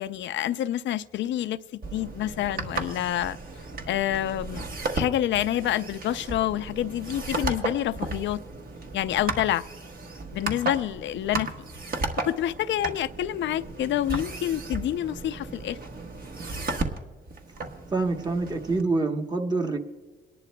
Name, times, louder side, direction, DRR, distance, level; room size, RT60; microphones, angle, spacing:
voice 1, 0.0-3.4 3.9-4.7 4.9-8.4 8.9-9.6 10.3-11.5 12.2-15.8, left 12 dB, 70° left, 13 dB, 0.5 m, -27 dB
sound 1, 1.8-18.8, right 3 dB, 45° right, 1.3 m, -35 dB
voice 2, 17.9-19.8, right 3 dB, 20° right, 3 dB, 1.1 m, -26 dB
28.5 x 11.0 x 2.2 m, 1.3 s
cardioid pair, 90°, 20 cm